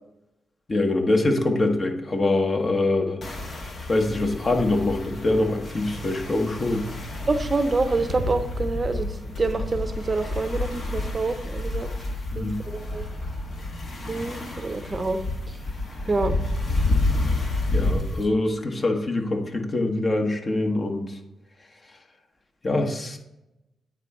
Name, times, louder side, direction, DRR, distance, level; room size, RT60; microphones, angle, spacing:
voice 1, 0.7-3.2 3.9-6.9 12.3-12.6 17.7-21.2 22.6-23.2, left 2 dB, 40° left, 3 dB, 1.2 m, -24 dB
sound 1, 3.2-18.2, left 2 dB, 60° left, 1.2 m, -29 dB
voice 2, 7.3-11.9 12.3-13.1 14.1-15.2 16.1-16.4, right 3 dB, 35° right, 9 dB, 0.7 m, -27 dB
9.1 x 3.7 x 4.3 m, 0.91 s
hypercardioid pair, 40°, 0 cm